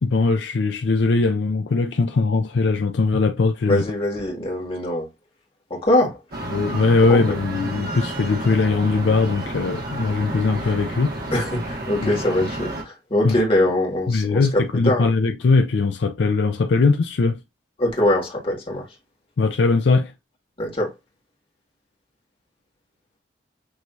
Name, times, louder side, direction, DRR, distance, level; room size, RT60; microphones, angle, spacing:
voice 1, 0.0-3.9 6.5-11.1 12.0-12.1 13.2-13.3 14.1-17.4 19.4-20.1, left 3 dB, 70° left, 0.5 m, -20 dB
voice 2, 3.7-5.1 5.7-6.2 7.1-7.2 11.3-14.5 14.8-15.1 17.8-18.8 20.6-20.9, left 1 dB, 30° left, 1.8 m, -22 dB
sound 1, 6.3-12.8, right 1 dB, 60° right, 1.6 m, -31 dB
6.2 x 3.0 x 2.7 m
head